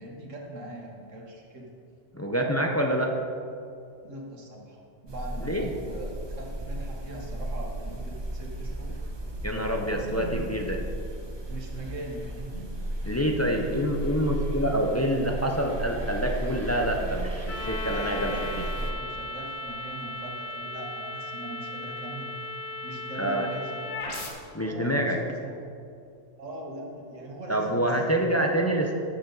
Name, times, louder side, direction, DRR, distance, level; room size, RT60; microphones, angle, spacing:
voice 1, 0.0-1.7 4.0-9.0 9.9-10.6 11.5-12.7 17.6-22.4 22.8-23.8 24.6-25.6 26.4-28.5, right 2 dB, 70° right, 0 dB, 1.8 m, -41 dB
voice 2, 2.1-3.2 5.4-5.7 9.4-10.8 13.0-18.3 23.2-23.5 24.5-25.2 27.5-28.9, equal, 20° left, 1 dB, 0.5 m, -26 dB
sound 1, 5.1-18.9, right 1 dB, 25° right, 0.8 m, -35 dB
sound 2, 17.5-24.3, left 1 dB, 85° left, 1.6 m, -36 dB
13.5 x 6.9 x 4.0 m, 2.5 s
omnidirectional pair, 1.4 m